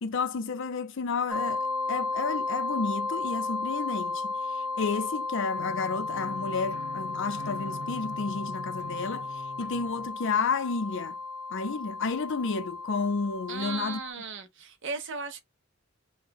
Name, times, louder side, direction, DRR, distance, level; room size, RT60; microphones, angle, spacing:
voice 1, 0.0-11.1 11.5-14.0, left 4 dB, 65° left, 0.5 m, -31 dB
sound 1, 1.3-14.1, left 3 dB, 5° right, 0.4 m, -34 dB
sound 2, 5.5-10.1, left 1 dB, 85° left, 1.3 m, -43 dB
voice 2, 13.5-15.4, right 5 dB, 65° right, 0.9 m, -36 dB
3.5 x 2.3 x 3.4 m
head